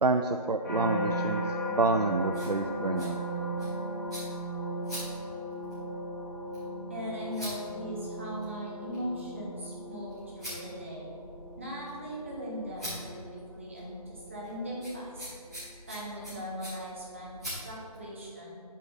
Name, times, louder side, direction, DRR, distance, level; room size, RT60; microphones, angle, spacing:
voice 1, 0.0-1.4 1.7-3.2, right 3 dB, 90° right, 6 dB, 0.5 m, -28 dB
sound 1, 0.6-15.8 16.4-16.8, equal, 25° left, 2.0 m, -37 dB
sound 2, 1.9-18.1, equal, ahead, 2.1 m, -46 dB
voice 2, 6.9-11.1 11.6-15.3 15.9-17.3 17.6-18.6, equal, 20° right, -5 dB, 1.4 m, -39 dB
8.4 x 8.3 x 3.9 m, 2.3 s
figure-of-eight pair, 170°, 20 cm